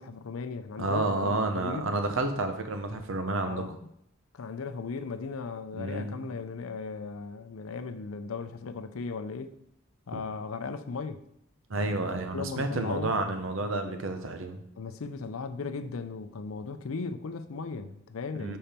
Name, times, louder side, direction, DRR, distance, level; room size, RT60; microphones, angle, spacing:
voice 1, 0.0-1.9 3.4-3.8 4.3-9.6 10.1-11.2 12.3-13.2 14.8-18.6, left 4 dB, 85° left, 0.5 m, -37 dB
voice 2, 0.8-3.7 5.7-6.3 10.1-10.2 11.7-14.6 18.3-18.6, right 2 dB, 70° right, 0.8 m, -30 dB
5.4 x 4.3 x 5.2 m
head